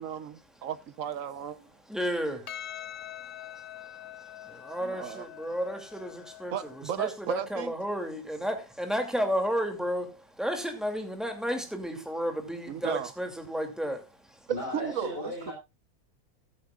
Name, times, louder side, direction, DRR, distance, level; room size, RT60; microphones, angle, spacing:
voice 1, 0.0-1.7 4.8-5.3 6.5-7.7 12.7-13.1 14.5-15.5, right 9 dB, 60° right, 1.3 m, -35 dB
voice 2, 1.9-2.5 3.0-14.4, equal, ahead, 2.5 m, -33 dB
Percussion, 2.5-7.1, left 12 dB, 85° left, 1.4 m, -44 dB
voice 3, 14.5-15.5, left 1 dB, 35° left, 6.7 m, -36 dB
14.5 x 14.0 x 2.4 m
omnidirectional pair, 1.6 m